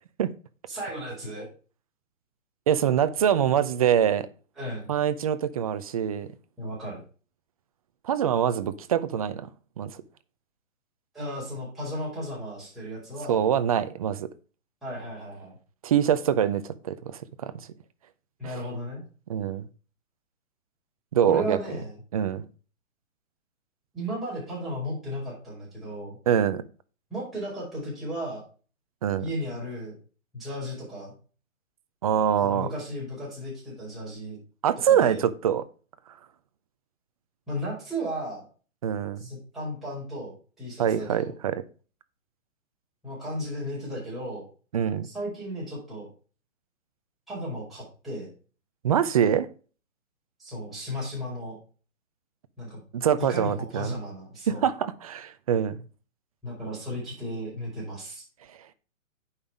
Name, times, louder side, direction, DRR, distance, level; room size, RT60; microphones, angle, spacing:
voice 1, 0.7-1.5 4.6-4.9 6.6-7.0 11.1-13.4 14.8-15.5 18.4-19.0 21.2-22.0 23.9-26.2 27.1-28.4 29.2-30.0 30.3-31.1 32.4-34.4 34.9-35.2 37.5-38.4 39.2-41.3 43.0-44.4 45.0-46.1 47.3-48.3 50.4-51.6 52.6-52.8 53.2-54.6 56.4-58.2, equal, ahead, 5.3 m, -35 dB
voice 2, 2.7-4.3 4.9-6.3 8.0-9.5 9.8-10.0 13.3-14.3 15.8-17.5 18.4-18.5 19.3-19.7 21.1-21.6 22.1-22.5 26.3-26.6 29.0-29.2 32.0-32.7 34.6-35.6 38.8-39.2 40.8-41.6 44.7-45.1 48.8-49.5 52.9-54.0 54.5-55.8, right 9 dB, 30° right, 0.5 m, -24 dB
8.8 x 5.6 x 4.9 m
hypercardioid pair, 145°, 40 cm